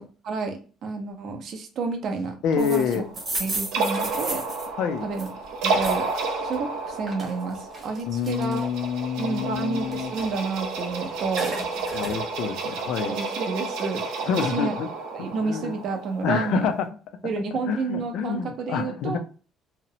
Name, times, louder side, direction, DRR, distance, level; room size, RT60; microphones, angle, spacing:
voice 1, 0.2-3.0 3.4-4.4 5.0-5.3 5.6-8.7 9.2-11.6 13.1-14.7 15.1-16.7 17.2-19.2, right 4 dB, 45° right, 0.5 m, -30 dB
voice 2, 2.4-3.0 4.8-5.1 8.1-10.1 11.9-13.2 14.3-14.9 15.2-15.8 16.2-16.9 17.7-19.2, left 7 dB, 60° left, 0.3 m, -27 dB
sound 1, 2.4-16.9, right 3 dB, 85° right, 0.6 m, -31 dB
sound 2, 2.6-6.1 6.5-8.9 9.3-10.9 11.1-12.2, right 2 dB, 25° right, 0.9 m, -35 dB
2.8 x 2.0 x 2.7 m
cardioid pair, 170°, 0 cm